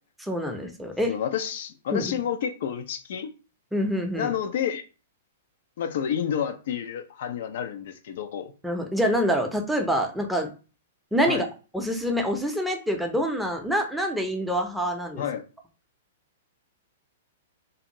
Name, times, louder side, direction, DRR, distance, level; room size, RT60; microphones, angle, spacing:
voice 1, 0.3-1.2 1.9-2.1 3.7-4.3 8.6-10.5 11.1-11.5 11.7-15.2, equal, 5° right, 3 dB, 0.5 m, -26 dB
voice 2, 1.1-3.3 4.1-4.8 5.8-8.5 11.3-11.4 15.2-15.4, left 8 dB, 65° left, 9 dB, 0.3 m, -29 dB
2.6 x 2.5 x 2.8 m, 0.34 s
hypercardioid pair, 115°, 0 cm